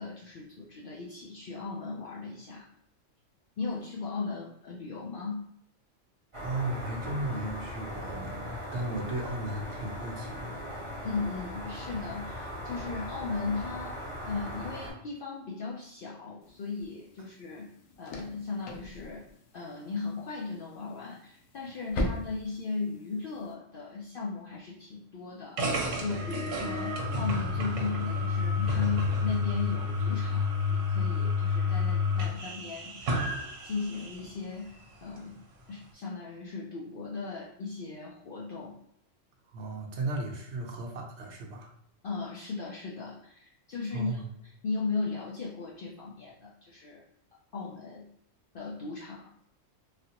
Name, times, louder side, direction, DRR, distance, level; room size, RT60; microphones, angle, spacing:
voice 1, 0.0-2.7 3.6-5.5 11.0-17.7 18.0-19.3 19.5-35.4 35.7-38.8 42.0-47.0 47.5-48.1 48.5-49.3, left 4 dB, 65° left, -4 dB, 0.5 m, -37 dB
sound 1, 6.3-14.9, equal, 25° right, 0.9 m, -39 dB
voice 2, 6.4-10.6 39.5-41.7 43.9-44.3, right 2 dB, 65° right, 1 dB, 0.9 m, -35 dB
sound 2, 16.4-23.5, left 1 dB, 85° left, 1.0 m, -40 dB
sound 3, 25.6-34.3, left 4 dB, 85° right, 1.1 m, -30 dB
3.3 x 2.4 x 2.8 m, 0.74 s
omnidirectional pair, 1.3 m